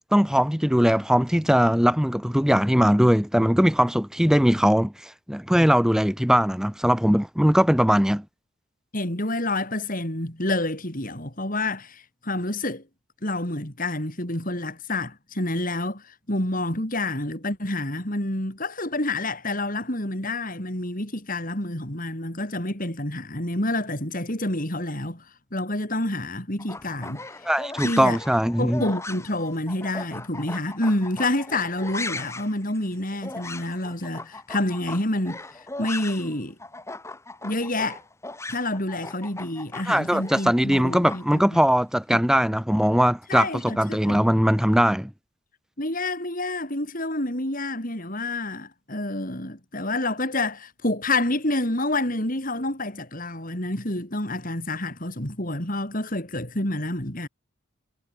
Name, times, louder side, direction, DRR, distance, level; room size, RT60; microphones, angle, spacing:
voice 1, 0.1-8.2 27.5-28.8 39.9-45.1, equal, 5° right, 1.1 m, -20 dB
voice 2, 8.9-12.8 13.2-25.2 25.5-27.3 27.8-28.2 28.6-36.6 37.4-38.0 38.5-41.4 42.1-42.2 43.3-44.3 45.8-57.3, left 2 dB, 40° left, 5.0 m, -28 dB
sound 1, 26.6-36.3 36.6-41.6, left 2 dB, 15° left, 1.7 m, -38 dB
head